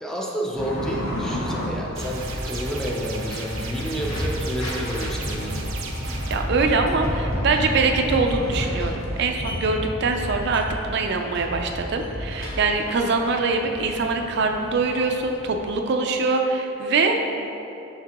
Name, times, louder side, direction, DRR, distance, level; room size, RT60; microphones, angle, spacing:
voice 1, 0.0-5.7, equal, ahead, -2 dB, 0.4 m, -30 dB
sound 1, 0.6-15.7, equal, 85° left, 1.2 m, -31 dB
sound 2, 2.0-6.3, right 3 dB, 85° right, 0.7 m, -36 dB
voice 2, 6.3-17.6, right 3 dB, 55° right, 3 dB, 0.4 m, -23 dB
6.2 x 5.8 x 2.9 m, 2.9 s
head